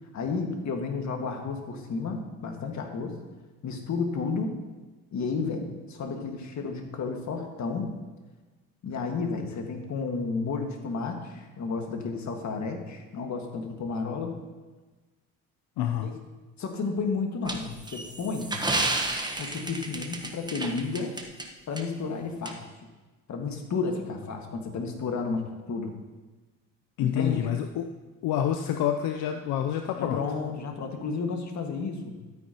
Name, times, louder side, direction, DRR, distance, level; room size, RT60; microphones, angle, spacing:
voice 1, 0.1-3.2 3.6-4.6 5.1-8.0 8.8-14.4 16.0-16.1 16.6-18.6 19.4-21.2 21.7-22.6 23.3-25.9 27.0-27.4 30.0-32.2, left 4 dB, 50° left, 4 dB, 1.7 m, -32 dB
voice 2, 15.8-16.1 27.0-27.9 28.2-30.2, left 10 dB, 80° left, 6 dB, 0.6 m, -27 dB
sound 1, 17.5-21.5 21.8-21.9 22.5-22.6, right 2 dB, 10° right, 1.1 m, -31 dB
13.0 x 9.0 x 2.9 m, 1.3 s
supercardioid pair, 80°, 35 cm